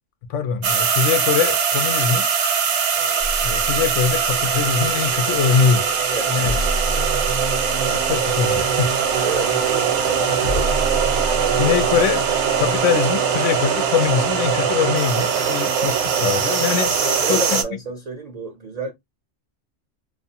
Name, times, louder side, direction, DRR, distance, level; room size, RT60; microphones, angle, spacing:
voice 1, 0.3-2.3 3.4-5.8 6.3-6.6 7.9-8.9 11.6-12.2 12.6-16.9 17.3-17.6, left 7 dB, 90° left, 0.9 m, -22 dB
sound 1, 0.6-17.6, right 7 dB, 75° right, 0.9 m, -21 dB
sound 2, 3.2-12.8, right 1 dB, 65° left, 0.8 m, -30 dB
voice 2, 6.1-6.6 6.9-7.3 9.2-10.9 11.5-11.7 15.4-15.9 17.0-18.9, right 2 dB, 50° right, 0.5 m, -31 dB
2.5 x 2.4 x 2.6 m
omnidirectional pair, 1.2 m